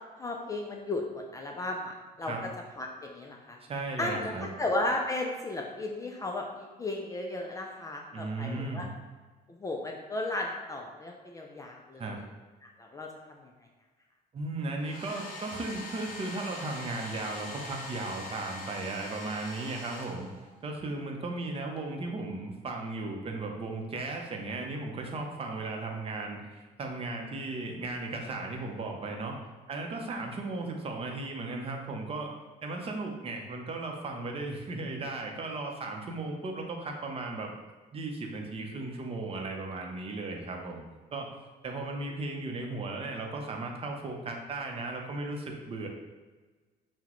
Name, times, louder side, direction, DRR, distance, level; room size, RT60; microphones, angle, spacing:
voice 1, 0.2-2.3 2.8-3.6 4.0-8.9 9.5-12.1 12.6-13.5, left 2 dB, 20° left, 0 dB, 0.4 m, -35 dB
voice 2, 3.6-4.5 8.1-8.8 12.0-12.2 14.3-20.3 20.6-29.4 29.7-32.3 32.6-37.5 37.9-40.8 41.1-41.3 41.6-45.9, right 2 dB, 35° right, 2 dB, 0.7 m, -36 dB
Domestic sounds home sounds, 14.8-20.7, left 2 dB, 50° left, 0.8 m, -43 dB
5.8 x 2.2 x 3.0 m, 1.3 s
cardioid pair, 110°, 17 cm